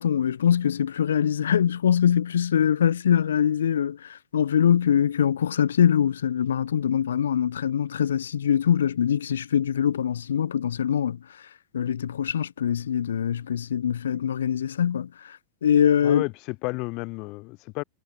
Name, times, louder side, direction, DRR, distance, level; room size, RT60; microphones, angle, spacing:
voice 1, 0.0-11.2 11.7-15.1 15.6-16.2, left 9 dB, 65° left, 1.5 m, -23 dB
voice 2, 16.0-17.8, left 26 dB, 40° left, 5.8 m, -32 dB
figure-of-eight pair, 90°, 0 cm